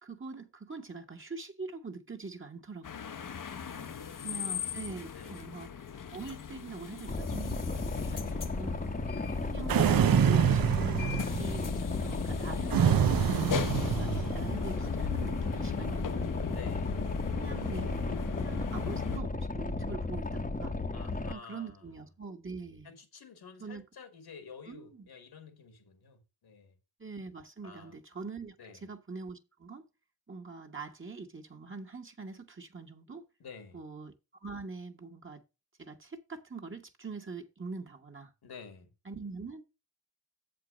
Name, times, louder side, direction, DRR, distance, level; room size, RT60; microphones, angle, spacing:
voice 1, 0.0-3.0 4.2-5.7 6.1-7.7 8.6-8.8 9.4-16.3 17.3-18.0 18.4-20.8 21.3-22.9 23.6-23.8 24.7-25.0 27.0-29.9 30.3-33.3 33.7-34.1 34.4-35.4 35.8-38.3 39.0-39.6, right 4 dB, 30° right, 1.6 m, -43 dB
sound 1, 2.8-19.2, left 7 dB, 55° left, 0.9 m, -38 dB
voice 2, 3.6-4.7 5.1-5.4 8.1-8.4 16.5-17.0 20.9-21.8 22.8-26.7 27.6-27.9 28.6-28.9 33.4-33.8 38.4-38.9, left 5 dB, 85° left, 2.2 m, -50 dB
Boat Water vehicle, 7.0-21.3, left 2 dB, 20° left, 1.0 m, -34 dB
sound 2, 9.7-11.6 12.7-14.5, right 9 dB, 65° right, 0.7 m, -26 dB
7.6 x 4.7 x 6.3 m
cardioid pair, 60°, 38 cm